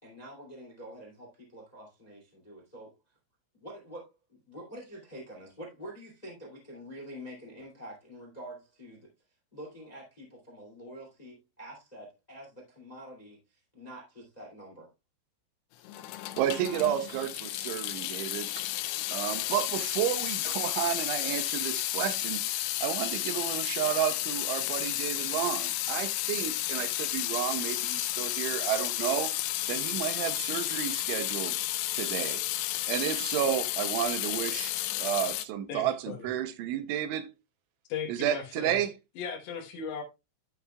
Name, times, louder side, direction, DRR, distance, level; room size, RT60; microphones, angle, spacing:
voice 1, 0.0-2.9 3.6-9.1 9.5-14.9, equal, 35° left, 0.6 m, -46 dB
Water tap faucet / Sink (filling or washing) / Drip, 15.9-35.5, left 16 dB, 90° left, 2.5 m, -32 dB
voice 2, 16.4-18.6 19.1-22.4 22.8-29.3 29.7-31.6 31.9-32.4 32.9-34.7 35.0-37.3 38.1-39.0, right 11 dB, 80° right, 3.0 m, -31 dB
voice 3, 35.7-36.3 37.9-38.8 39.2-40.0, left 6 dB, 70° left, 3.2 m, -37 dB
11.5 x 6.7 x 2.2 m
omnidirectional pair, 5.6 m